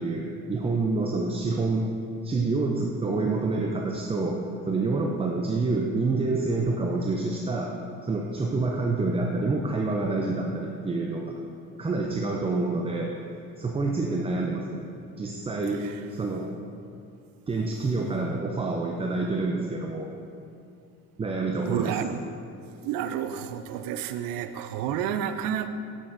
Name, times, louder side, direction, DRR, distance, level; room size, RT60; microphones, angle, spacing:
voice 1, 0.0-1.9 2.2-7.7 8.0-11.4 11.8-13.1 13.6-14.8 15.2-15.8 16.1-16.5 17.5-20.1 21.2-22.2, right 3 dB, 15° right, 0 dB, 0.4 m, -27 dB
voice 2, 21.7-22.2 22.8-25.7, right 9 dB, 65° right, 10 dB, 0.5 m, -30 dB
7.5 x 6.2 x 2.6 m, 2.5 s
supercardioid pair, 80°, 36 cm